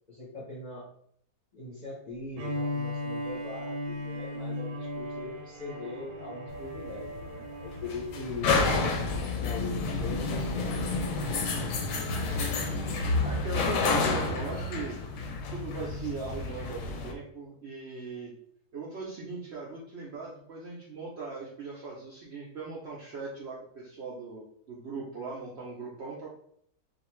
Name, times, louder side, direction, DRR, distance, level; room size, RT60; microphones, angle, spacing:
voice 1, 0.1-0.9 1.5-8.5 9.4-10.9, left 3 dB, 45° left, -7 dB, 0.5 m, -41 dB
Bowed string instrument, 2.3-8.4, left 1 dB, 80° right, 1.1 m, -37 dB
sound 1, 6.5-17.1, left 3 dB, 70° left, 0.9 m, -30 dB
voice 2, 12.4-15.0 15.5-18.3 18.7-26.3, right 4 dB, 65° right, -5 dB, 0.6 m, -39 dB
2.5 x 2.4 x 3.0 m, 0.66 s
omnidirectional pair, 1.6 m